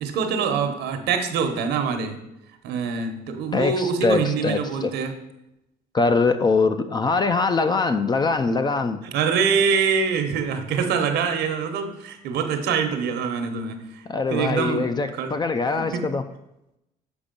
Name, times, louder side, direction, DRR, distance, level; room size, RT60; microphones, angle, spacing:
voice 1, 0.0-2.2 2.6-5.1 9.1-14.0 14.3-14.9 15.2-15.3 15.9-16.0, right 6 dB, 80° right, 7 dB, 1.0 m, -24 dB
voice 2, 3.5-4.9 5.9-9.0 14.1-16.2, left 4 dB, 25° left, 9 dB, 0.4 m, -22 dB
7.0 x 5.0 x 5.2 m, 0.87 s
cardioid pair, 110°, 17 cm